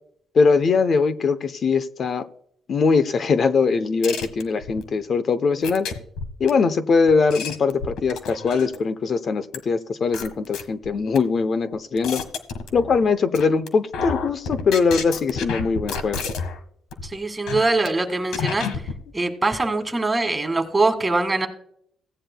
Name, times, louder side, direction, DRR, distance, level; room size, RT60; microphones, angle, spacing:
voice 1, 0.3-2.3 2.7-5.9 6.4-12.2 12.7-16.2, left 4 dB, 50° left, 12 dB, 0.7 m, -21 dB
sound 1, 4.0-4.8 5.6-6.5 7.1-8.9 9.5-9.6 10.1-11.2 11.7-13.1 13.3-13.7 13.9-16.6 16.9-17.1 17.5-17.9 18.3-19.0, left 5 dB, 85° left, 1.4 m, -30 dB
voice 2, 17.0-18.7 19.1-21.5, right 2 dB, 15° right, 6 dB, 1.9 m, -22 dB
16.5 x 9.8 x 2.2 m, 0.65 s
cardioid pair, 90°, 0 cm